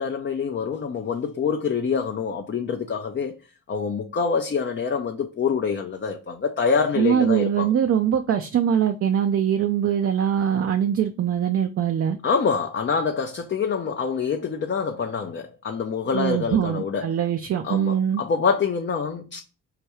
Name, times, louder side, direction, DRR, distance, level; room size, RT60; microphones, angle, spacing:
voice 1, 0.0-3.3 3.7-7.7 12.2-17.1 17.6-19.4, left 5 dB, 35° left, 0.5 m, -26 dB
voice 2, 7.0-12.2 16.1-18.2, right 9 dB, 45° right, 0.4 m, -22 dB
4.7 x 2.3 x 3.0 m
supercardioid pair, 50°, 34 cm